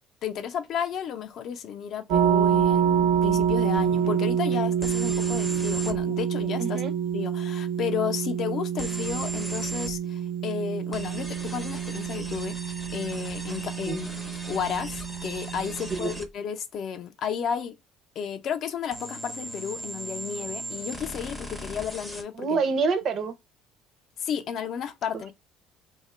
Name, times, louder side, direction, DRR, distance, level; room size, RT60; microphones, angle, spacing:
voice 1, 0.2-6.8 7.1-17.8 18.2-22.6 24.2-25.3, left 8 dB, 45° left, 0.5 m, -33 dB
sound 1, 2.1-16.2, right 8 dB, 85° right, 0.8 m, -27 dB
sound 2, 4.8-6.0 8.8-9.9 10.9-16.3 18.9-22.2, right 1 dB, ahead, 0.6 m, -38 dB
voice 2, 6.6-6.9 13.9-14.0 15.9-16.2 22.3-23.3, right 4 dB, 40° right, 0.5 m, -27 dB
2.8 x 2.3 x 4.2 m
cardioid pair, 155°, 0 cm